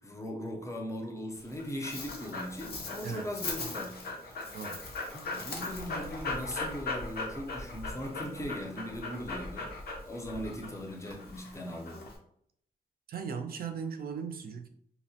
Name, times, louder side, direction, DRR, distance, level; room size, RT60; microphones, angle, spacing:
voice 1, 0.0-4.5 5.1-9.7 10.0-12.0, equal, 20° left, 2 dB, 0.5 m, -39 dB
Dog, 1.4-12.2, left 3 dB, 75° left, 0.6 m, -39 dB
voice 2, 13.1-14.7, right 6 dB, 70° right, 7 dB, 0.4 m, -37 dB
2.8 x 2.0 x 2.7 m, 0.68 s
wide cardioid pair, 105°, 16 cm